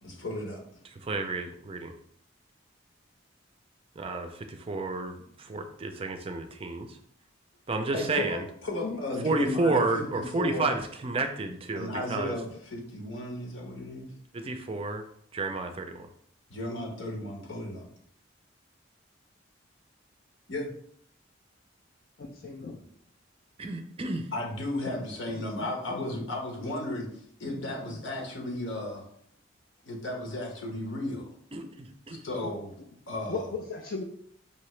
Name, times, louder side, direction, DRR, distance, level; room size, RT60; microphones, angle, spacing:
voice 1, 0.0-0.6 7.9-10.7 11.7-14.1 16.5-17.8 20.5-20.7 24.3-27.1 27.4-29.0 29.8-31.2 32.2-32.7 33.1-33.5, left 1 dB, 80° left, 1 dB, 1.1 m, -34 dB
voice 2, 1.0-1.9 4.0-6.9 7.7-8.4 9.2-12.3 14.3-15.0 15.3-16.1 23.6-24.3 31.5-32.2, right 3 dB, 30° right, 6 dB, 0.4 m, -31 dB
voice 3, 22.2-22.8 24.8-25.1 25.6-26.2 26.6-26.7 27.4-28.0 32.4-32.5 33.3-33.4 33.7-34.0, left 3 dB, 45° left, 0 dB, 0.4 m, -38 dB
5.3 x 2.8 x 3.1 m, 0.65 s
head